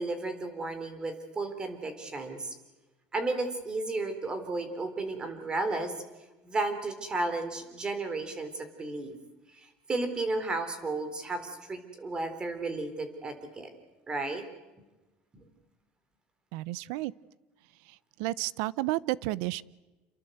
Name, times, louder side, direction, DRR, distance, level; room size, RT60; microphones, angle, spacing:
voice 1, 0.0-2.6 3.1-5.9 6.4-9.2 9.5-13.7 14.1-14.4 15.3-15.5, right 2 dB, 20° right, 9 dB, 3.8 m, -33 dB
voice 2, 16.5-17.1 18.2-19.6, right 18 dB, 85° right, 21 dB, 0.8 m, -31 dB
28.5 x 23.0 x 8.0 m, 1.1 s
cardioid pair, 150°, 4 cm